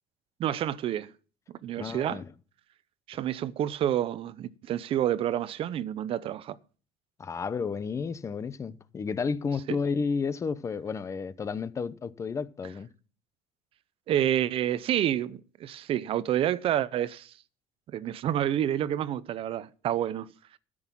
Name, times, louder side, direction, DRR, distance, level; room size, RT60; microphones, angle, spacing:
voice 1, 0.4-1.1 1.6-2.2 3.1-6.6 9.7-9.8 14.1-17.3 17.9-20.3, right 11 dB, 45° right, 0.7 m, -28 dB
voice 2, 1.8-2.3 7.2-12.9, left 5 dB, 25° left, 0.7 m, -32 dB
13.0 x 6.2 x 7.3 m
cardioid pair, 135°, 13 cm